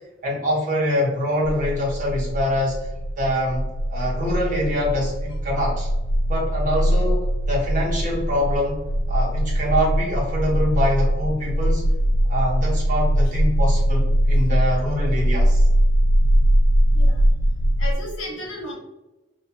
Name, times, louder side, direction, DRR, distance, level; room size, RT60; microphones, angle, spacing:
voice 1, 0.2-2.8 3.2-5.9 6.3-8.8 9.1-11.8 12.3-15.7, left 1 dB, 40° right, -5 dB, 0.9 m, -24 dB
sound 1, 1.4-17.9, equal, 65° right, 0.3 m, -21 dB
voice 2, 17.8-18.7, left 1 dB, 80° left, -2 dB, 0.9 m, -33 dB
2.8 x 2.3 x 2.2 m, 1.0 s
head